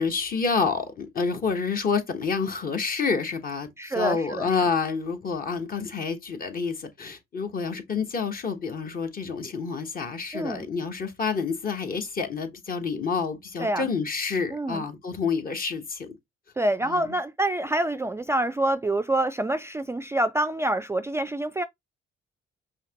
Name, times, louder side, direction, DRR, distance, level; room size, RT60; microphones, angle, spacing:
voice 1, 0.0-16.1 16.8-17.1, left 5 dB, 45° left, 1.1 m, -28 dB
voice 2, 3.8-4.5 10.3-10.7 13.6-13.9 14.5-14.8 16.6-21.6, right 1 dB, 15° right, 0.3 m, -26 dB
5.6 x 2.8 x 2.9 m
cardioid pair, 90°, 20 cm